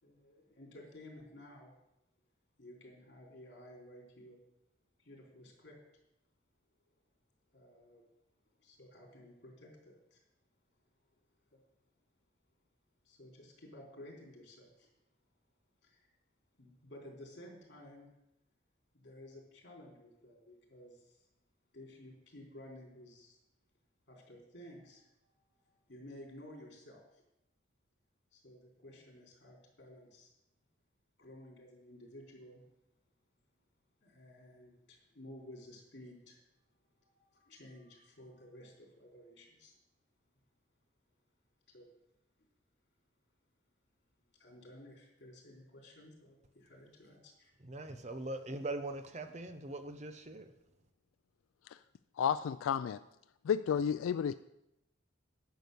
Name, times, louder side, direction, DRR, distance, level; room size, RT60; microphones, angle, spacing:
voice 1, 0.0-1.7 2.6-4.4 5.0-5.8 7.5-8.0 8.6-10.2 11.5-11.6 13.0-14.9 15.8-16.1 16.6-18.1 18.9-21.3 21.7-23.4 24.1-27.2 28.3-30.3 31.2-32.6 34.0-36.4 36.8-39.7 41.7-41.9 44.3-47.5, left 1 dB, 55° left, 0 dB, 3.5 m, -54 dB
voice 2, 47.6-50.5, right 2 dB, 35° right, 8 dB, 0.7 m, -41 dB
voice 3, 52.2-53.0 53.4-54.3, left 7 dB, 90° left, 13 dB, 0.3 m, -31 dB
10.5 x 7.0 x 6.7 m, 0.87 s
head